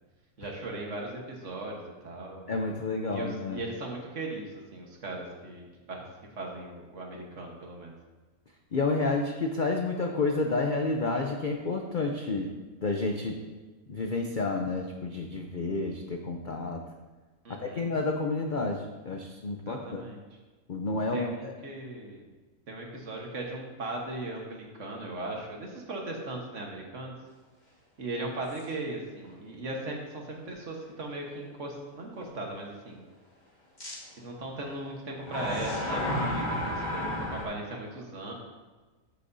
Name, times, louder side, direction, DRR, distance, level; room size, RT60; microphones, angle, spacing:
voice 1, 0.4-2.5 3.1-6.0 6.3-7.9 17.4-17.9 19.7-20.2 21.1-22.2 22.7-27.1 28.0-33.0 34.2-38.3, right 2 dB, 55° right, 0 dB, 1.6 m, -38 dB
voice 2, 2.5-3.6 8.7-12.5 12.8-13.4 13.9-16.8 17.5-20.0 20.7-21.5, left 3 dB, 55° left, 2 dB, 0.5 m, -30 dB
sound 1, 28.5-28.6 29.2-29.3 33.8-33.9 35.2-37.4, left 1 dB, 30° left, 1.9 m, -31 dB
13.5 x 6.6 x 2.7 m, 1.3 s
omnidirectional pair, 1.6 m